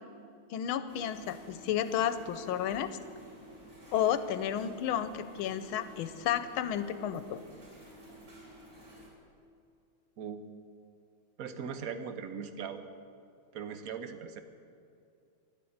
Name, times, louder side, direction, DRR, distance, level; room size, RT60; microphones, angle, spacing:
voice 1, 0.5-3.0 3.9-7.4, left 10 dB, 75° left, 12 dB, 1.5 m, -32 dB
sound 1, 0.9-9.1, equal, 30° right, 3.8 m, -52 dB
voice 2, 11.4-12.8 13.5-14.4, right 6 dB, 55° right, 9 dB, 1.0 m, -39 dB
12.0 x 12.0 x 8.6 m, 2.5 s
omnidirectional pair, 2.4 m